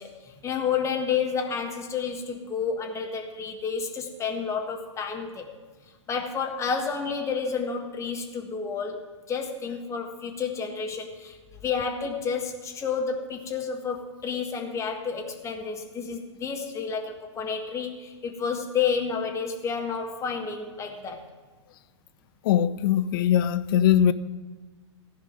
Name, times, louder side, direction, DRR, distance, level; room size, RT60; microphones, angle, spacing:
voice 1, 0.0-5.5 6.1-21.2, left 6 dB, 20° left, 1.6 m, -30 dB
voice 2, 22.4-24.1, left 10 dB, 45° left, 0.6 m, -21 dB
15.0 x 5.2 x 8.9 m
figure-of-eight pair, 105°, 15 cm